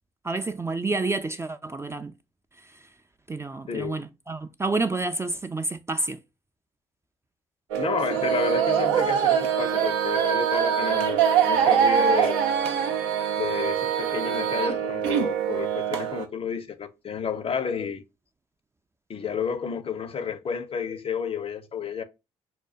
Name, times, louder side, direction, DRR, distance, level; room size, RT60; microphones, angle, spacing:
voice 1, 0.2-2.1 3.3-6.2, right 3 dB, 15° right, 0.3 m, -29 dB
sound 1, 7.7-16.3, right 8 dB, 80° right, 0.4 m, -23 dB
voice 2, 7.8-12.4 13.4-18.0 19.1-22.0, left 6 dB, 40° left, 0.5 m, -31 dB
5.6 x 2.2 x 2.4 m
hypercardioid pair, 45°, 15 cm